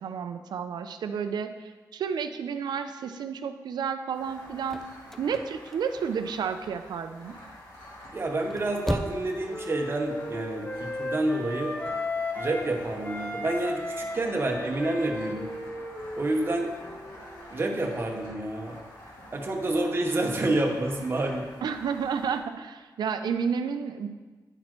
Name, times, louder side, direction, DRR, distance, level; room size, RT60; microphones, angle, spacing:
voice 1, 0.0-4.9 5.2-7.4 21.6-24.1, right 6 dB, 90° right, 9 dB, 0.5 m, -31 dB
sound 1, 4.1-22.4, left 1 dB, 85° left, 2.4 m, -48 dB
sound 2, 4.4-6.5 6.9-7.5 8.2-9.4 9.7-9.8, left 1 dB, 5° left, 0.4 m, -35 dB
voice 2, 8.1-11.7 12.3-15.5 16.2-16.7 17.5-18.8 19.3-21.5, right 2 dB, 35° right, 1 dB, 0.9 m, -28 dB
Wind instrument woodwind instrument, 8.3-12.7 13.0-17.5, left 2 dB, 25° left, 0.8 m, -36 dB
9.8 x 4.2 x 4.5 m, 1.3 s
wide cardioid pair, 110°, 7 cm